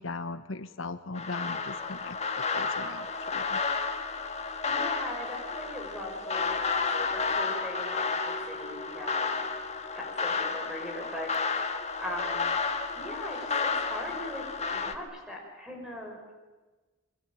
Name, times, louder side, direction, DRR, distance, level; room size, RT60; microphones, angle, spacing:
voice 1, 0.0-3.6, left 3 dB, 75° left, 11 dB, 1.0 m, -39 dB
sound 1, 1.1-14.9, left 4 dB, 30° left, 1.5 m, -31 dB
voice 2, 4.6-9.4 9.9-11.3 11.8-12.5 12.9-16.2, left 1 dB, 5° right, 1 dB, 6.1 m, -40 dB
24.5 x 24.5 x 9.2 m, 1.3 s
head